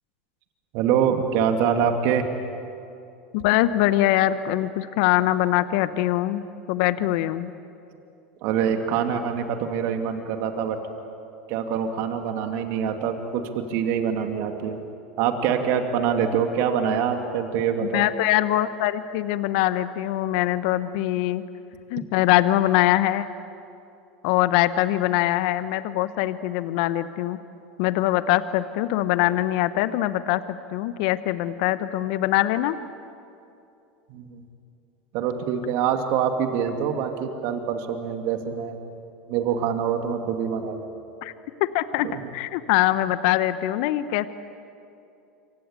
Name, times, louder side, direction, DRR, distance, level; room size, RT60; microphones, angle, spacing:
voice 1, 0.7-2.3 8.4-10.8 11.5-14.8 15.2-18.1 34.1-34.4 35.1-38.8 39.3-40.9 42.0-42.1, right 7 dB, 60° right, 5 dB, 2.7 m, -25 dB
voice 2, 3.3-6.4 6.7-7.5 17.8-21.4 21.9-23.3 24.2-27.4 27.8-32.8 41.2-41.3 41.6-44.3, left 14 dB, 65° left, 13 dB, 0.9 m, -23 dB
27.5 x 25.0 x 8.4 m, 2.7 s
hypercardioid pair, 85°, 5 cm